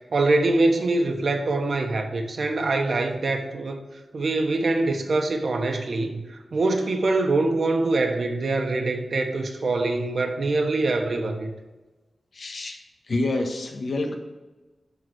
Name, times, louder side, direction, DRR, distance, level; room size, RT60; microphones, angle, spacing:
voice 1, 0.1-3.8 4.1-11.5, right 2 dB, 65° right, 4 dB, 1.3 m, -24 dB
voice 2, 12.3-12.8 13.1-14.1, left 2 dB, 65° left, 3 dB, 1.4 m, -27 dB
12.5 x 4.2 x 6.3 m, 1.2 s
wide cardioid pair, 90°, 0 cm